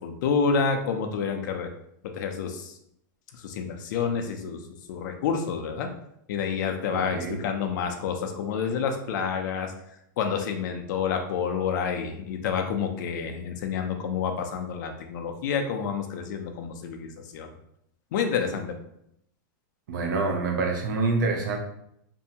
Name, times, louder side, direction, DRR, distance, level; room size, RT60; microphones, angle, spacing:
voice 1, 0.0-1.7 2.0-2.7 3.4-4.6 4.9-5.9 6.3-9.7 10.2-17.5 18.1-18.8, left 6 dB, 60° left, 5 dB, 0.5 m, -28 dB
voice 2, 6.9-7.4 19.9-21.6, right 3 dB, 75° right, 3 dB, 0.6 m, -27 dB
2.6 x 2.2 x 2.7 m, 0.75 s
supercardioid pair, 140°, 11 cm